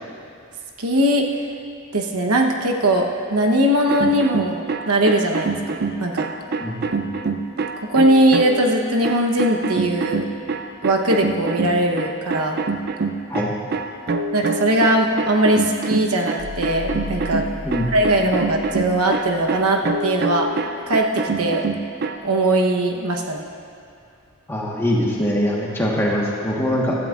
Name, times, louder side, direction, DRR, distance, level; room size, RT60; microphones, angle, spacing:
voice 1, 0.8-1.3 1.9-5.6 6.0-6.3 7.8-10.3 10.8-12.6 14.3-17.4 17.9-20.5 20.9-21.6 22.2-23.4, right 1 dB, 85° right, 1 dB, 1.0 m, -20 dB
sound 1, 3.8-8.7 9.0-22.2, right 4 dB, 45° right, 0.4 m, -26 dB
voice 2, 6.6-7.1 13.3-13.5 17.6-17.9 24.5-27.0, equal, 10° left, -4 dB, 1.3 m, -23 dB
sound 2, 16.4-19.0 19.3-19.4, left 1 dB, 50° left, 1.0 m, -34 dB
16.0 x 12.5 x 2.5 m, 2.5 s
head